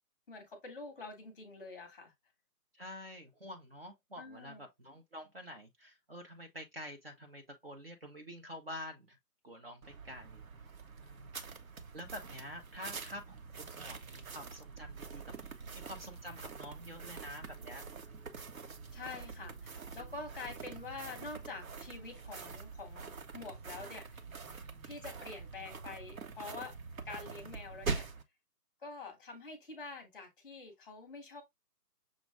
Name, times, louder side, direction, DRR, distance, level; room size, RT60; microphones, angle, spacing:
voice 1, 0.3-2.1 4.2-4.6 18.9-24.0 24.8-26.7 27.0-28.1 28.8-31.4, left 3 dB, 5° left, 0.9 m, -46 dB
voice 2, 2.7-9.2 9.4-10.4 11.0-11.4 11.9-15.4 15.7-17.9, equal, 40° right, 0.6 m, -48 dB
sound 1, 9.8-28.2, right 5 dB, 55° right, 1.0 m, -45 dB
6.3 x 2.3 x 3.2 m
figure-of-eight pair, 155°, 48 cm